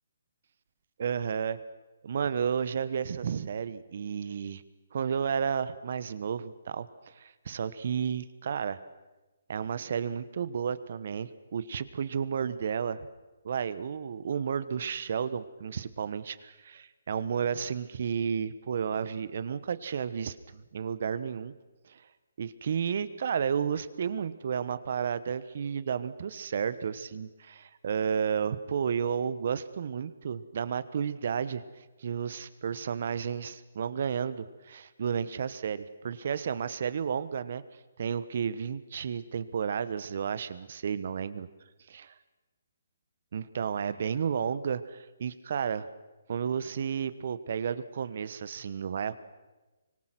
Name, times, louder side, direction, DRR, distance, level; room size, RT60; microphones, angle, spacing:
voice 1, 1.0-1.6 2.0-4.6 4.9-6.9 7.2-8.8 9.5-13.1 13.4-21.5 21.9-22.0 22.4-31.6 32.0-37.6 38.0-41.5 41.9-42.1 43.3-45.9 46.3-49.2, right 7 dB, 55° right, 15 dB, 1.2 m, -32 dB
25.0 x 20.5 x 6.1 m, 1.2 s
hypercardioid pair, 145°, 0 cm